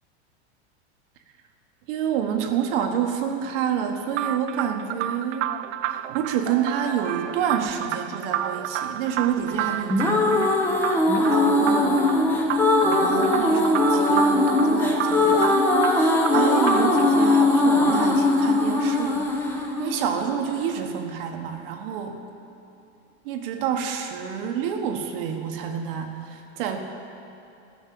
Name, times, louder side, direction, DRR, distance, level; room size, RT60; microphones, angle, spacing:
voice 1, 1.9-5.5 5.8-10.5 10.8-12.1 12.8-15.6 16.0-19.3 19.8-22.2 23.2-26.8, right 8 dB, 55° right, 4 dB, 1.2 m, -28 dB
sound 1, 4.1-17.1, right 12 dB, 90° right, 0.5 m, -31 dB
sound 2, 9.7-20.7, left 2 dB, 5° left, 0.9 m, -20 dB
13.5 x 6.5 x 7.6 m, 2.7 s
supercardioid pair, 150°, 34 cm